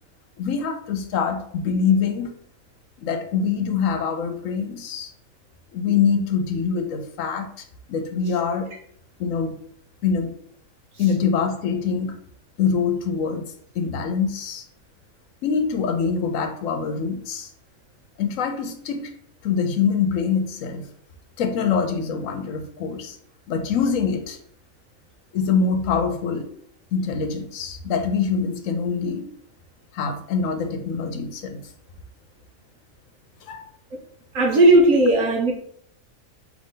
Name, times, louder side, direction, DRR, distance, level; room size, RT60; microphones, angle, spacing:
voice 1, 0.4-2.3 3.0-5.1 5.7-7.5 7.9-8.7 9.2-9.6 10.0-10.4 11.0-12.2 12.6-14.6 15.4-17.5 18.2-19.0 19.4-20.9 21.4-23.2 23.5-24.4 25.3-26.5 26.9-29.3 29.9-31.6 33.5-33.6, left 6 dB, 75° left, 6 dB, 1.0 m, -24 dB
voice 2, 34.3-35.5, right 1 dB, 70° right, 0 dB, 1.3 m, -16 dB
3.9 x 3.1 x 3.7 m, 0.64 s
omnidirectional pair, 1.4 m